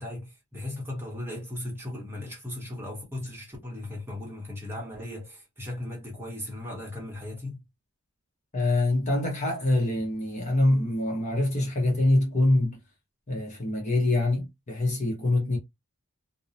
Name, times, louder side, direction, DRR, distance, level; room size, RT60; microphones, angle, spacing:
voice 1, 0.0-7.6, left 1 dB, 10° right, 0.9 m, -37 dB
voice 2, 8.5-12.8 13.3-15.6, left 2 dB, 30° left, 0.8 m, -25 dB
2.6 x 2.0 x 2.7 m
head